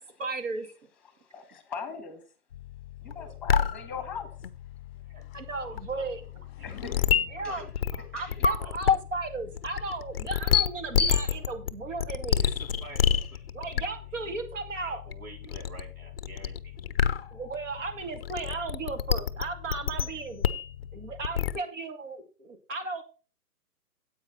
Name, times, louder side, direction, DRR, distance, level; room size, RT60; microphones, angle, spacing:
voice 1, 0.2-0.7 5.3-6.2 7.3-7.6 8.1-12.5 13.5-15.0 17.3-20.5 20.9-23.0, right 3 dB, 50° right, 8 dB, 2.4 m, -35 dB
voice 2, 1.0-2.2 3.0-4.3 6.6-7.7 8.1-8.5, left 6 dB, ahead, 9 dB, 1.6 m, -41 dB
sound 1, 2.5-21.6, left 7 dB, 40° left, 0.6 m, -30 dB
sound 2, 4.7-8.4, left 9 dB, 20° left, 1.2 m, -49 dB
voice 3, 5.6-6.1 6.6-7.1 7.4-7.6 7.9-8.7 12.4-13.6 14.8-16.8, right 2 dB, 70° right, 3 dB, 4.2 m, -49 dB
9.7 x 8.2 x 4.2 m, 0.34 s
hypercardioid pair, 150°, 46 cm